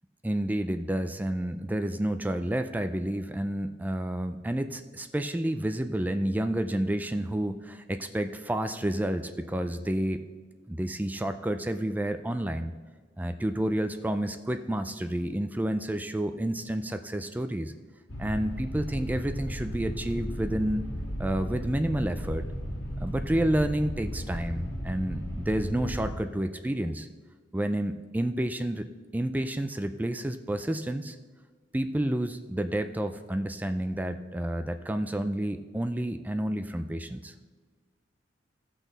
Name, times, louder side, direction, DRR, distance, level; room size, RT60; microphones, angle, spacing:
voice 1, 0.2-10.2 10.7-12.7 13.2-17.7 18.2-20.9 21.2-22.5 23.0-27.1 27.5-28.9 29.1-31.2 31.7-37.3, right 1 dB, 10° right, 9 dB, 0.4 m, -30 dB
sound 1, 18.1-26.2, equal, 75° left, 1.7 m, -35 dB
17.0 x 6.1 x 4.0 m, 1.4 s
head